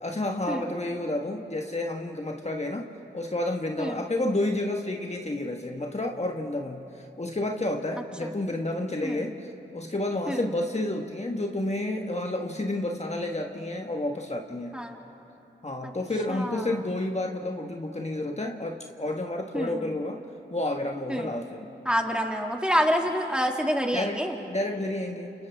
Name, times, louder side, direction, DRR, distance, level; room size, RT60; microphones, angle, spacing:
voice 1, 0.0-2.9 3.1-14.8 15.6-20.2 20.5-21.7 23.9-24.2 24.5-25.3, left 1 dB, 35° left, 2 dB, 1.5 m, -30 dB
voice 2, 16.3-16.8 19.5-20.0 21.1-21.3 21.8-24.4, equal, 5° right, 1 dB, 2.4 m, -27 dB
29.0 x 29.0 x 3.6 m, 2.9 s
cardioid pair, 45°, 20 cm